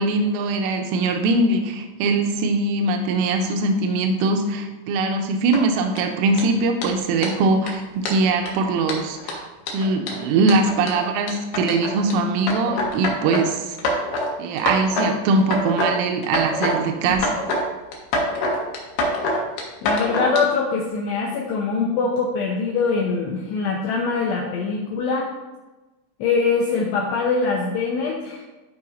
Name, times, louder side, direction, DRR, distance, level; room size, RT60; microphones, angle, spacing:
voice 1, 0.0-9.5 9.7-13.8 14.4-17.3, right 3 dB, 90° right, 4 dB, 3.2 m, -21 dB
sound 1, 5.5-6.0 6.3-6.4 6.8-6.9 7.2-7.3 7.7-7.8 8.1-8.5 8.9-12.1 12.5-13.4 13.8-14.3 14.6-15.1 15.4-15.9 16.2-16.8 17.1-17.6 17.9-20.4, left 1 dB, 70° left, 2.7 m, -25 dB
voice 2, 19.8-25.3 26.2-28.5, left 4 dB, 85° left, -1 dB, 2.4 m, -23 dB
14.0 x 4.8 x 2.6 m, 1.1 s
omnidirectional pair, 5.7 m